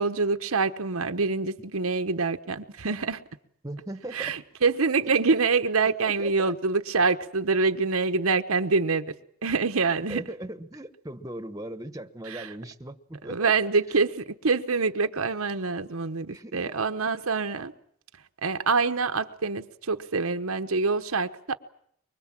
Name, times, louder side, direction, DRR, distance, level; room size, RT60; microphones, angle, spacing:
voice 1, 0.0-3.2 4.1-9.1 9.4-10.2 12.3-12.5 13.2-17.7 18.4-21.6, right 4 dB, 80° right, 7 dB, 1.0 m, -26 dB
voice 2, 3.6-4.3 5.8-6.5 10.1-13.5 16.3-16.6, right 1 dB, 15° right, 10 dB, 1.1 m, -38 dB
24.0 x 23.5 x 7.5 m, 0.69 s
head